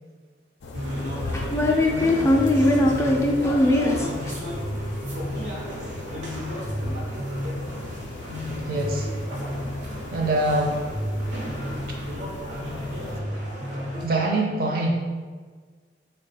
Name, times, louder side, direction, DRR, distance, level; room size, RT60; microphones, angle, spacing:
sound 1, 0.6-13.2, left 2 dB, 90° left, 0.4 m, -37 dB
sound 2, 0.7-14.0, equal, 85° right, 0.8 m, -32 dB
voice 1, 1.0-4.3, left 1 dB, 15° left, -1 dB, 0.3 m, -21 dB
voice 2, 8.7-9.1 10.1-10.8 14.0-14.9, right 2 dB, 55° right, 0 dB, 0.6 m, -24 dB
3.5 x 2.3 x 4.0 m, 1.5 s
head